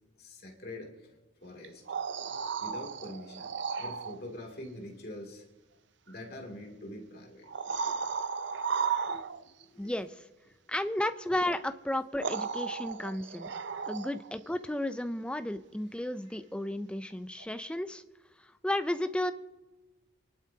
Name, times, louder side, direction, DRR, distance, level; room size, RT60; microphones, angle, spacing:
voice 1, 0.2-1.1 1.4-1.8 2.6-5.5 6.1-7.5 9.0-9.2 9.6-10.0 16.3-16.4, left 1 dB, 50° left, 1 dB, 2.6 m, -45 dB
sound 1, 1.6-4.2 6.1-6.2 7.4-9.6 11.5-11.6 12.2-14.3 17.4-17.5, right 6 dB, 65° right, 0.5 m, -34 dB
voice 2, 9.8-10.3 10.7-13.5 13.9-18.0 18.4-19.3, left 1 dB, 5° left, 10 dB, 0.4 m, -33 dB
27.5 x 11.5 x 2.8 m, 1.2 s
head